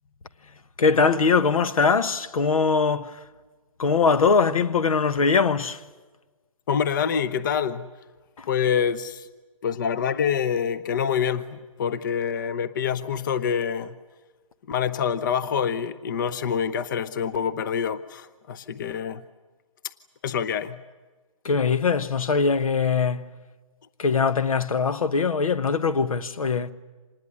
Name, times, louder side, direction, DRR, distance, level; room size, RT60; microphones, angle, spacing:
voice 1, 0.8-3.2 3.8-5.8 8.4-8.5 21.4-23.3 24.0-26.7, left 5 dB, 80° left, 1.4 m, -22 dB
voice 2, 6.7-7.9 8.5-9.3 9.6-14.0 14.7-19.2 20.2-20.8, left 7 dB, 35° left, 0.8 m, -26 dB
26.5 x 20.0 x 9.7 m
hypercardioid pair, 165°, 17 cm